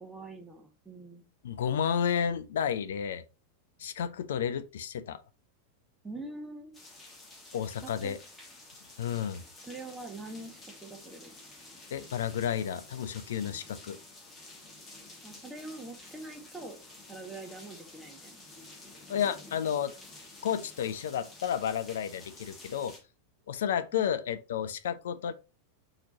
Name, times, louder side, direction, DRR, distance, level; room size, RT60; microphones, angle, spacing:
voice 1, 0.0-1.2 6.0-6.8 7.8-8.2 9.6-11.3 15.2-16.8 17.1-18.5 23.9-24.0, right 2 dB, 10° right, 1.0 m, -44 dB
voice 2, 1.4-3.2 3.8-5.2 7.5-8.2 9.0-9.4 11.9-14.0 19.1-19.9 20.4-23.0 23.5-25.3, left 8 dB, 60° left, 0.3 m, -31 dB
sound 1, 6.7-23.0, left 2 dB, 15° left, 1.3 m, -51 dB
4.2 x 2.9 x 3.8 m
figure-of-eight pair, 90°, 0 cm